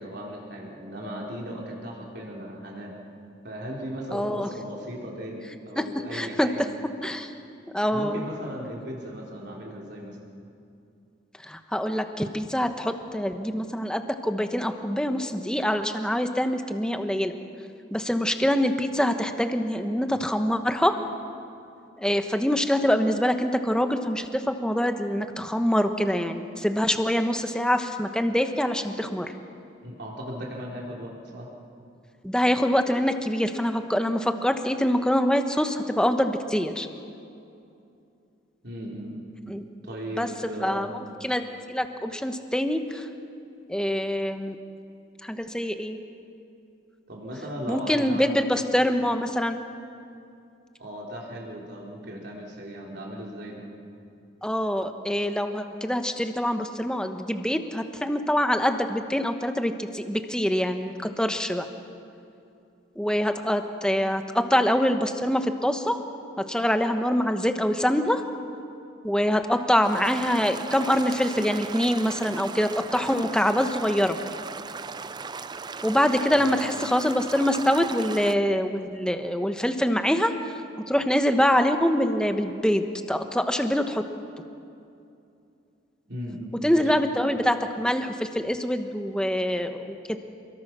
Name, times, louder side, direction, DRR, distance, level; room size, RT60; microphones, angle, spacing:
voice 1, 0.0-2.9 3.4-6.7 7.9-10.2 29.8-31.5 38.6-39.2 39.8-40.9 47.1-48.4 50.8-53.7 76.3-76.6 86.1-86.8, equal, 55° right, -2 dB, 4.1 m, -37 dB
voice 2, 4.1-4.5 5.8-6.5 7.0-7.3 7.7-8.3 11.4-17.3 17.9-21.0 22.0-29.3 32.2-36.9 39.5-39.7 40.1-40.3 40.6-40.9 41.2-43.1 43.7-44.6 45.2-46.0 47.7-49.6 54.4-61.7 63.0-66.0 66.5-68.2 69.0-74.2 75.8-80.6 80.9-84.0 86.6-90.2, equal, 5° left, 6 dB, 1.1 m, -25 dB
sound 1, 69.8-78.3, right 5 dB, 20° right, 0.4 m, -37 dB
28.5 x 21.5 x 6.2 m, 2.6 s
head